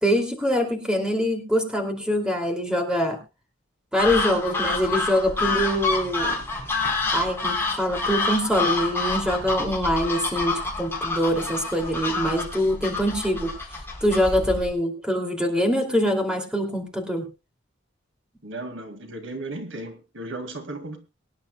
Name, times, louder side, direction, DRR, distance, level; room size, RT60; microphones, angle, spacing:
voice 1, 0.0-3.2 3.9-6.4 7.1-13.5 14.0-17.2, equal, 5° right, 2.7 m, -24 dB
sound 1, 4.0-14.7, left 3 dB, 10° left, 4.5 m, -28 dB
voice 2, 18.4-21.0, right 2 dB, 70° right, 2.0 m, -35 dB
23.5 x 10.5 x 2.3 m
head